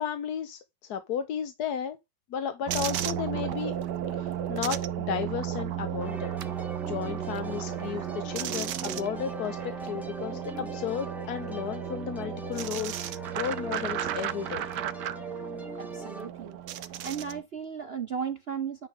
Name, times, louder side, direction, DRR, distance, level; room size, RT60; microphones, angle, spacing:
voice 1, 0.0-2.0 2.3-3.8 4.1-6.4 6.8-13.1 13.4-14.7, left 8 dB, 65° left, 1.3 m, -34 dB
sound 1, 2.7-17.4, right 11 dB, 75° right, 1.3 m, -34 dB
sound 2, 6.0-16.3, right 2 dB, ahead, 1.2 m, -41 dB
voice 2, 15.8-16.6 17.0-18.9, right 7 dB, 55° right, 0.7 m, -35 dB
9.7 x 5.2 x 3.7 m
omnidirectional pair, 1.9 m